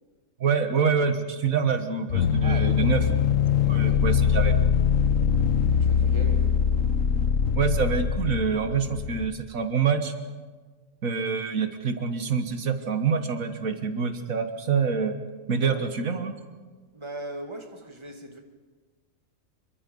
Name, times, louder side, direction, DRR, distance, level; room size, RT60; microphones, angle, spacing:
voice 1, 0.4-3.0 3.7-4.6 7.6-10.1 11.0-15.2 15.5-16.3, right 6 dB, 85° right, 7 dB, 1.8 m, -26 dB
sound 1, 2.1-9.3, left 7 dB, 70° left, 1.3 m, -23 dB
voice 2, 2.4-2.9 3.6-4.1 5.7-6.4 15.6-15.9 16.9-18.4, right 1 dB, 20° right, 3 dB, 2.3 m, -39 dB
26.5 x 23.5 x 5.4 m, 1.4 s
omnidirectional pair, 1.4 m